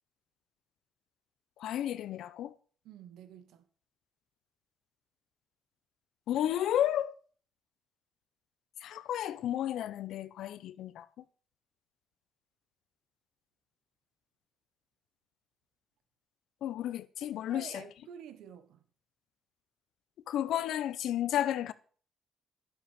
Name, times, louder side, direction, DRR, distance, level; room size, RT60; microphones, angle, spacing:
voice 1, 1.6-2.5 6.3-7.1 8.8-11.1 16.6-17.8 20.3-21.7, left 11 dB, 80° left, 0.7 m, -32 dB
voice 2, 2.8-3.6 17.2-18.8, right 9 dB, 85° right, 1.3 m, -49 dB
11.5 x 7.5 x 6.5 m
cardioid pair, 90°, 0 cm